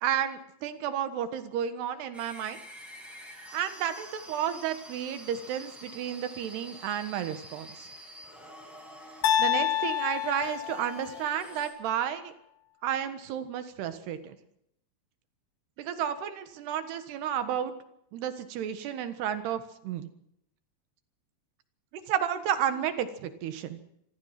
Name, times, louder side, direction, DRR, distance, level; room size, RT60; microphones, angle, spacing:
voice 1, 0.0-2.6 3.5-7.9 9.4-12.3 12.8-14.4 15.8-17.7 18.1-20.1 22.1-23.8, right 9 dB, 90° right, 10 dB, 3.6 m, -32 dB
sound 1, 2.1-11.7, equal, ahead, 7.3 m, -48 dB
sound 2, 9.2-11.4, left 10 dB, 70° left, 3.2 m, -28 dB
25.5 x 18.0 x 5.9 m, 0.76 s
omnidirectional pair, 4.6 m